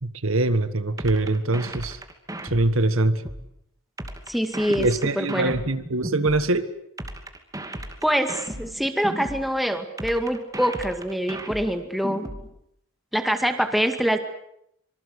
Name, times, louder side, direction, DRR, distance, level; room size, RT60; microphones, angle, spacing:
voice 1, 0.0-2.0 2.4-3.2 4.8-6.7, right 2 dB, 65° right, 12 dB, 1.6 m, -23 dB
sound 1, 1.0-3.5 4.0-6.5 7.0-9.5 10.0-12.5, right 1 dB, 15° right, 2.7 m, -35 dB
voice 2, 4.3-4.9 5.2-5.5 8.0-12.2 13.1-14.2, equal, ahead, 6 dB, 2.2 m, -24 dB
25.5 x 24.5 x 8.1 m, 0.76 s
head